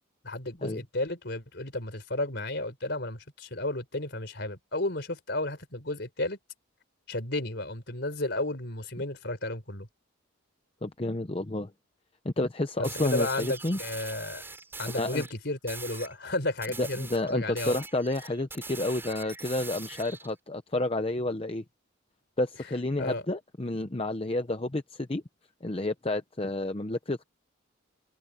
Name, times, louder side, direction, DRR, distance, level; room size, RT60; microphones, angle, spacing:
voice 1, 0.2-6.4 7.1-9.9 12.8-14.4 14.8-17.8 23.0-23.2, left 2 dB, 55° left, 4.6 m, -33 dB
voice 2, 10.8-11.7 12.2-13.8 15.0-15.2 16.8-21.6 22.4-25.2 25.6-27.2, left 2 dB, 25° left, 0.7 m, -30 dB
sound 1, 12.8-15.3 15.7-16.1 16.6-20.3, right 3 dB, 10° right, 4.8 m, -42 dB
head